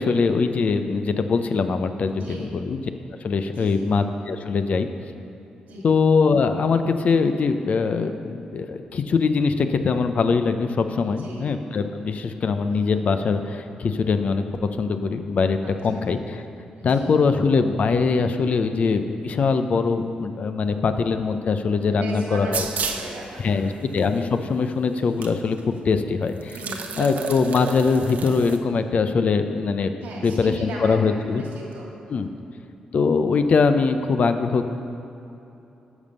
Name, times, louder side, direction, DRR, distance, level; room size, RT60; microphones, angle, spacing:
voice 1, 0.0-2.8 3.2-4.9 5.8-14.4 14.7-16.4 16.8-22.6 23.4-25.6 25.8-26.6 27.0-31.4 32.1-32.3 32.9-34.7, left 4 dB, 55° left, 8 dB, 0.7 m, -22 dB
voice 2, 2.1-2.5 3.5-3.9 5.6-5.8 11.0-11.5 15.6-16.1 16.8-17.1 21.8-23.6 26.5-26.8 30.0-31.0 31.3-31.9, right 1 dB, 85° right, -3 dB, 2.4 m, -37 dB
sound 1, 22.5-23.1 24.0-24.1 25.2-25.3 25.6-25.7 26.4-28.6, right 5 dB, 70° right, 0.8 m, -30 dB
11.0 x 5.4 x 6.7 m, 2.9 s
cardioid pair, 75°, 3 cm